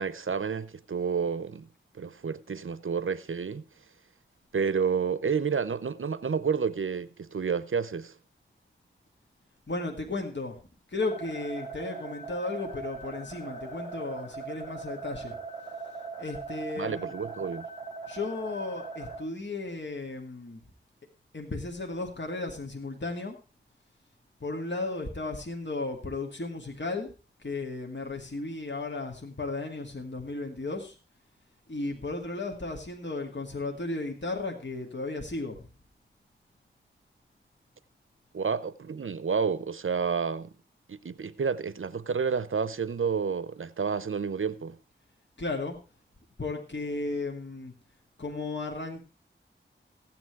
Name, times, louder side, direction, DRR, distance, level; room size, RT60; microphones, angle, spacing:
voice 1, 0.0-1.7 1.9-3.6 4.5-8.1 16.8-17.7 38.3-40.5 40.9-44.8, right 6 dB, 75° right, 0.6 m, -30 dB
voice 2, 9.7-10.6 10.9-15.4 16.2-17.1 18.1-20.6 21.3-23.4 24.4-27.1 27.4-31.0 31.7-35.7 45.4-45.8 46.4-47.7 48.2-49.0, left 3 dB, 60° left, 2.2 m, -34 dB
sound 1, 11.0-19.2, right 4 dB, 20° right, 5.5 m, -40 dB
15.0 x 9.0 x 4.6 m
wide cardioid pair, 55°, 21 cm